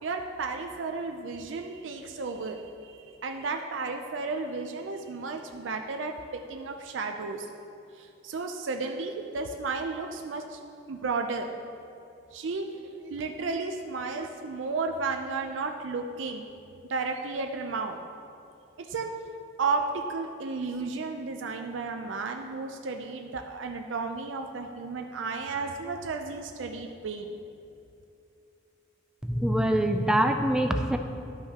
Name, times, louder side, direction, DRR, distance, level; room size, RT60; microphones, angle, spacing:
voice 1, 0.0-6.1 6.5-7.5 8.0-10.6 10.9-11.5 12.3-16.5 16.9-18.0 18.8-19.1 19.6-27.3, right 4 dB, 85° right, 4 dB, 0.5 m, -33 dB
voice 2, 29.3-31.0, right 1 dB, 5° right, 5 dB, 0.3 m, -24 dB
12.0 x 5.6 x 2.9 m, 2.6 s
head